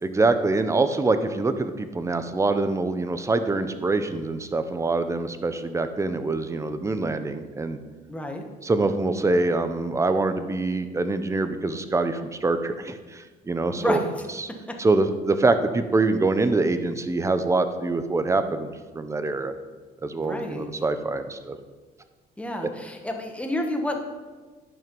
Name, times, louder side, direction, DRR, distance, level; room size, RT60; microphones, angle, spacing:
voice 1, 0.0-7.8 8.6-14.0 14.4-14.5 14.8-18.7 18.9-19.6 20.0-21.6, right 3 dB, 15° right, 10 dB, 0.7 m, -24 dB
voice 2, 8.1-8.5 13.8-14.0 14.7-14.8 20.2-20.7 22.4-24.0, left 1 dB, 5° left, 3 dB, 1.3 m, -30 dB
11.0 x 5.6 x 5.3 m, 1.4 s
cardioid pair, 110°, 17 cm